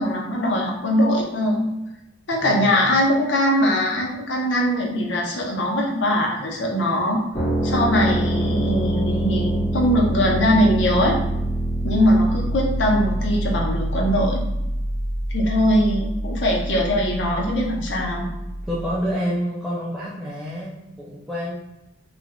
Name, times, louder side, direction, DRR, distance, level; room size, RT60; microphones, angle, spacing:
voice 1, 0.0-1.7 2.3-7.2 7.6-11.2 11.8-14.4 15.3-18.3, equal, 70° left, -1 dB, 0.7 m, -21 dB
voice 2, 2.4-2.8 18.6-21.6, equal, ahead, -8 dB, 0.4 m, -28 dB
Rhodes bass E, 7.3-19.0, right 1 dB, 35° left, 1.0 m, -25 dB
3.2 x 2.4 x 2.2 m, 0.94 s
head